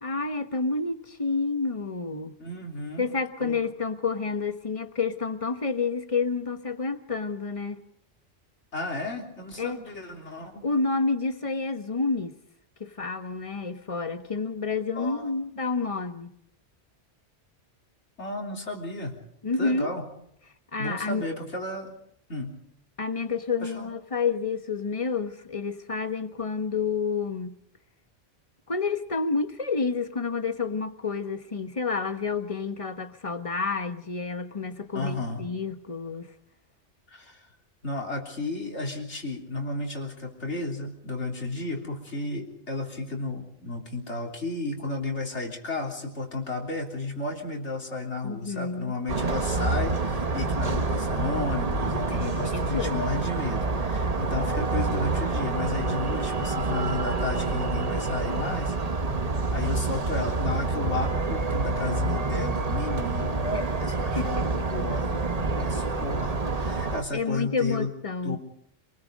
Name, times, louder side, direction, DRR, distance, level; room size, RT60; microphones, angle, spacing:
voice 1, 0.0-2.3 3.0-7.8 9.6-9.8 10.6-12.4 12.8-16.4 19.4-19.9 20.7-21.2 23.0-27.6 28.7-36.3 48.2-48.9 52.1-53.0 63.5-63.7 64.2-64.7 67.1-68.4, left 4 dB, 30° left, 1.2 m, -29 dB
voice 2, 2.4-3.1 3.4-3.6 8.7-10.6 14.9-15.3 18.2-19.2 19.6-20.0 20.8-22.0 22.3-22.6 23.6-23.9 34.9-35.5 37.1-37.4 37.8-58.8 59.5-63.5 63.8-64.4 64.7-65.2 65.5-67.9 68.2-68.4, left 2 dB, 75° left, 3.7 m, -33 dB
sound 1, 49.1-67.0, right 3 dB, 35° right, 1.1 m, -27 dB
27.0 x 20.5 x 5.2 m
omnidirectional pair, 1.2 m